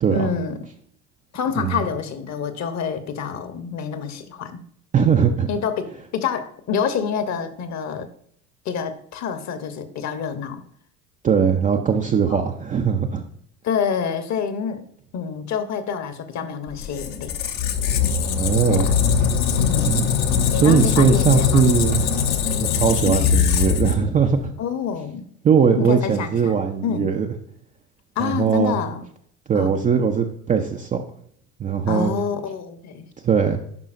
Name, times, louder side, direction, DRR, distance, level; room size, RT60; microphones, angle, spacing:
voice 1, 0.1-0.6 1.3-4.6 5.5-8.1 8.6-10.6 12.3-12.5 13.6-14.8 15.1-17.3 18.7-19.0 19.6-20.1 20.5-21.6 23.0-23.3 24.6-25.3 25.8-27.1 28.2-29.0 29.5-29.8 31.8-33.0, left 6 dB, 35° left, 10 dB, 1.0 m, -27 dB
voice 2, 4.9-5.5 11.2-13.2 18.4-18.9 19.9-20.1 20.5-22.1 22.6-24.5 25.4-27.3 28.2-28.7 29.5-31.0 31.6-32.1 33.2-33.6, right 6 dB, 20° right, 3 dB, 0.4 m, -20 dB
Squeak, 16.7-24.4, left 7 dB, 65° left, 1.0 m, -21 dB
10.5 x 5.5 x 2.6 m, 0.65 s
hypercardioid pair, 75°, 48 cm